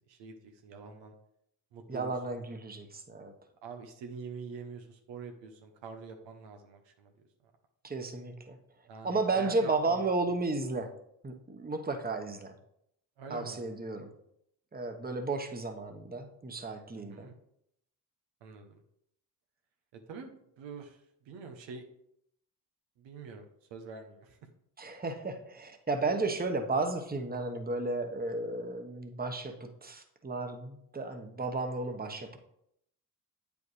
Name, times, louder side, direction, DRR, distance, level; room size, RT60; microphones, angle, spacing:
voice 1, 0.1-1.1 1.7-2.4 3.6-7.1 7.4-7.5 8.9-10.3 13.2-13.6 16.9-17.3 18.4-18.8 19.9-20.3 20.6-21.8 23.0-24.4, right 5 dB, 90° right, 4 dB, 0.9 m, -46 dB
voice 2, 1.9-3.3 7.8-8.6 9.0-10.9 11.2-12.5 13.3-14.1 14.7-17.3 24.8-32.4, right 3 dB, 20° right, 5 dB, 1.0 m, -33 dB
8.3 x 5.2 x 3.2 m, 0.75 s
supercardioid pair, 50°, 43 cm